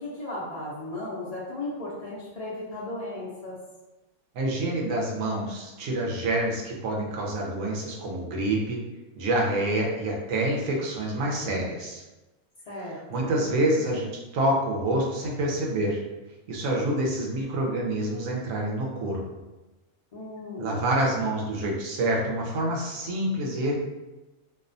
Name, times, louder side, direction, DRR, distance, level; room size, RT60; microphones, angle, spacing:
voice 1, 0.0-3.6 12.7-13.4 20.1-20.8, left 2 dB, 70° left, -7 dB, 0.3 m, -36 dB
voice 2, 4.3-8.8 9.2-12.0 12.7-16.0 16.5-19.2 20.6-23.7, right 1 dB, 80° right, -2 dB, 1.0 m, -27 dB
2.6 x 2.1 x 2.5 m, 1.1 s
omnidirectional pair, 1.4 m